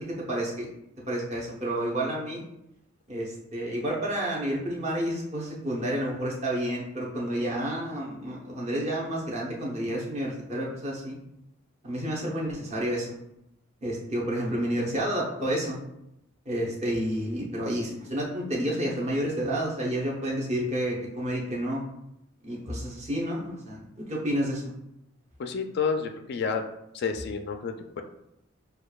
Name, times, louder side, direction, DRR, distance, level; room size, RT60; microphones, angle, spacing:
voice 1, 0.2-0.7 1.1-2.4 3.1-11.2 11.8-13.2 13.8-15.8 16.5-21.8 22.4-24.7, right 1 dB, 30° right, -3 dB, 0.8 m, -30 dB
voice 2, 25.4-26.6 26.9-28.0, left 5 dB, 50° left, 6 dB, 0.3 m, -30 dB
6.5 x 2.3 x 2.3 m, 0.83 s
head